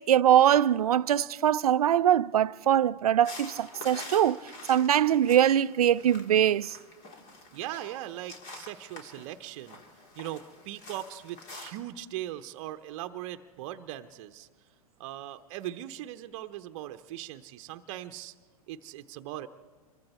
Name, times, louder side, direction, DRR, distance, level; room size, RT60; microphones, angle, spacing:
voice 1, 0.0-4.4 4.7-6.8, right 10 dB, 75° right, 0.5 m, -22 dB
sound 1, 3.2-11.8, left 2 dB, 45° left, 3.7 m, -47 dB
voice 2, 7.5-9.8 10.2-14.5 15.0-18.3 18.7-19.5, right 13 dB, 50° right, 0.8 m, -39 dB
26.5 x 23.0 x 4.4 m
hypercardioid pair, 100°, 19 cm